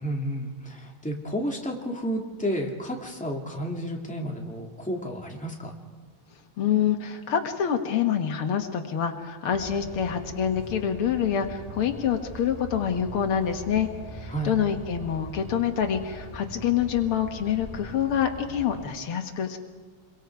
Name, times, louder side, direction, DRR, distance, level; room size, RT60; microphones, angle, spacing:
voice 1, 0.0-5.7 14.3-14.6, equal, 5° left, 0 dB, 2.4 m, -31 dB
voice 2, 6.6-19.6, left 8 dB, 80° left, 6 dB, 2.3 m, -26 dB
sound 1, 9.5-18.8, right 2 dB, 15° right, 5.1 m, -42 dB
28.5 x 23.0 x 4.7 m, 1.4 s
omnidirectional pair, 2.4 m